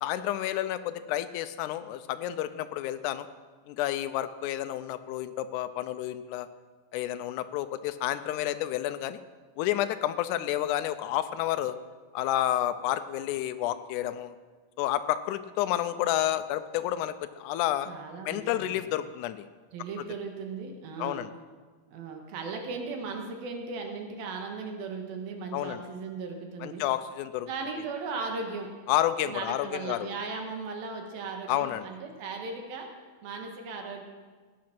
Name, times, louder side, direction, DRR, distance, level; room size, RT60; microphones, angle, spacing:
voice 1, 0.0-3.3 3.7-6.5 6.9-9.2 9.6-11.8 12.1-14.3 14.8-17.9 18.2-19.5 21.0-21.3 25.5-25.8 26.6-27.5 28.9-30.1 31.5-31.9, left 13 dB, 85° left, 10 dB, 1.8 m, -30 dB
voice 2, 17.9-18.8 19.7-21.2 21.9-26.8 27.5-28.7 29.3-32.9 33.2-34.0, right 4 dB, 85° right, 3 dB, 3.2 m, -37 dB
17.0 x 9.4 x 6.0 m, 1.4 s
omnidirectional pair, 4.2 m